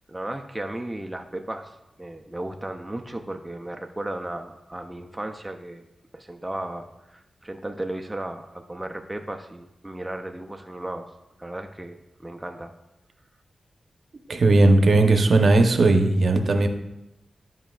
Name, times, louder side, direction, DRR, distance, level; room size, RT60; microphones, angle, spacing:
voice 1, 0.1-5.9 6.1-11.1 11.4-12.7, right 1 dB, 10° right, 4 dB, 0.3 m, -35 dB
voice 2, 14.3-16.7, right 2 dB, 55° right, 6 dB, 0.6 m, -17 dB
11.0 x 5.6 x 2.3 m, 0.91 s
wide cardioid pair, 150°, 0 cm